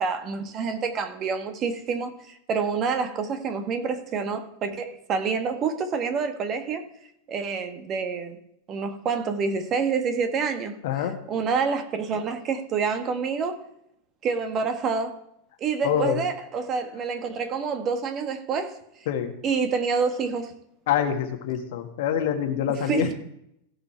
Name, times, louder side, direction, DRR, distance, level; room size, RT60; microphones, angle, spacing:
voice 1, 0.0-6.9 7.3-8.4 8.7-13.6 14.2-15.2 15.6-18.8 19.4-20.5 22.9-23.1, right 5 dB, 30° right, 7 dB, 1.4 m, -27 dB
voice 2, 10.8-11.1 15.8-16.2 19.1-19.3 20.9-23.1, left 9 dB, 50° left, 7 dB, 1.5 m, -25 dB
16.5 x 5.7 x 4.5 m, 0.77 s
figure-of-eight pair, 90°, 0 cm